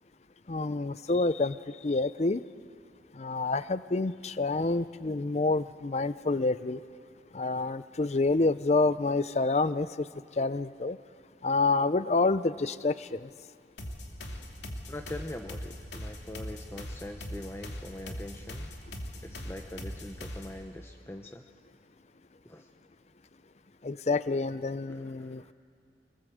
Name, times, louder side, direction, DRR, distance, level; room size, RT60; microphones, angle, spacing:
voice 1, 0.5-2.4 3.1-6.8 7.3-10.1 10.4-11.0 11.4-13.3 23.8-25.5, left 3 dB, 35° left, 15 dB, 0.5 m, -28 dB
sound 1, 13.8-20.6, left 1 dB, 85° left, 2.5 m, -41 dB
voice 2, 14.9-18.7 19.2-21.5 22.4-22.7 24.9-25.5, left 1 dB, 15° left, 4 dB, 0.9 m, -43 dB
26.0 x 20.0 x 7.9 m, 2.4 s
head